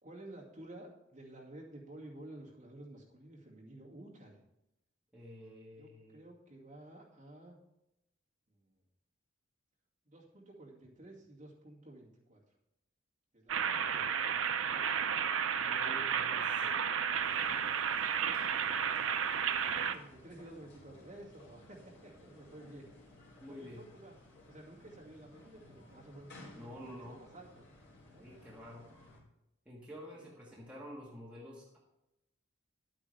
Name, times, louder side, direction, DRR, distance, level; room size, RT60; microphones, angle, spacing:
voice 1, 0.0-4.4 5.8-7.6 8.5-8.7 10.1-12.4 13.3-14.1 14.6-15.1 19.7-22.8 23.5-24.1 24.5-27.6 28.1-28.3 30.1-30.3, right 1 dB, 35° right, -4 dB, 2.2 m, -52 dB
voice 2, 5.1-6.2 15.6-16.8 23.4-23.9 26.5-27.2 28.2-28.9 29.6-31.8, left 1 dB, 5° right, -5 dB, 1.6 m, -49 dB
sound 1, 13.5-20.0, right 7 dB, 65° right, 0.5 m, -32 dB
sound 2, 17.1-29.2, left 1 dB, 55° left, 3.3 m, -57 dB
11.5 x 8.8 x 3.4 m, 0.87 s
head